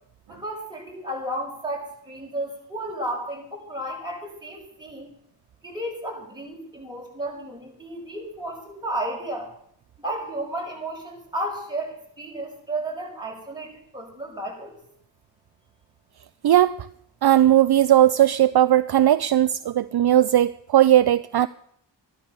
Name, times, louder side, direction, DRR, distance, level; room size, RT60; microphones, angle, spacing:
voice 1, 0.3-5.1 5.6-9.5 10.0-14.7, right 1 dB, 10° right, -2 dB, 6.1 m, -33 dB
voice 2, 16.4-16.8 17.2-21.5, right 12 dB, 60° right, 14 dB, 0.5 m, -18 dB
14.0 x 12.5 x 6.8 m, 0.69 s
wide cardioid pair, 85°, 45 cm